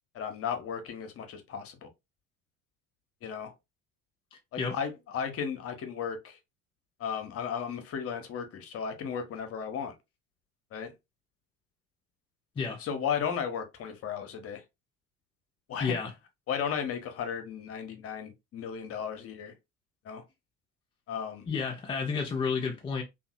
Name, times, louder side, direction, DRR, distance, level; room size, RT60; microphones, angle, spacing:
voice 1, 0.1-1.9 3.2-3.5 4.5-6.4 7.0-9.9 10.7-10.9 12.8-14.6 15.7-16.0 16.5-19.5 20.0-20.2 21.1-21.5, left 7 dB, 30° left, 0.7 m, -35 dB
voice 2, 4.3-4.8 12.6-12.8 15.8-16.1 21.5-23.0, left 5 dB, 15° left, 0.3 m, -31 dB
2.7 x 2.4 x 2.5 m
figure-of-eight pair, 60°, 43 cm